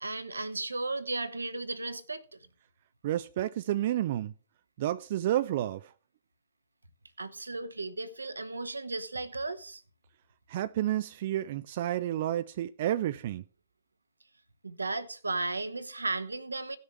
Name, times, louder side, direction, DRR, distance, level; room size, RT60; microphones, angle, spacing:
voice 1, 0.0-2.4 7.2-9.8 14.6-16.8, right 3 dB, 85° right, 0.9 m, -35 dB
voice 2, 3.0-4.3 4.8-5.9 10.5-13.4, right 12 dB, 50° right, 0.4 m, -30 dB
17.0 x 6.5 x 3.3 m
figure-of-eight pair, 115°, 0 cm